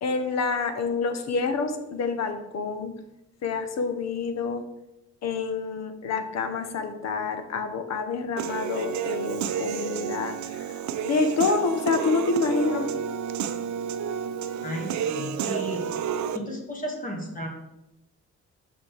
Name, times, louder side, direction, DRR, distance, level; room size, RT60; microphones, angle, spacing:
voice 1, 0.0-2.9 3.4-4.6 5.2-10.4 11.0-12.9, left 4 dB, 60° left, 7 dB, 1.0 m, -27 dB
Human voice / Piano, 8.4-16.4, right 8 dB, 70° right, 0.5 m, -30 dB
voice 2, 14.6-15.9 16.3-17.5, equal, 25° left, 0 dB, 1.9 m, -34 dB
6.3 x 5.9 x 3.4 m, 0.89 s
cardioid pair, 90°, 30 cm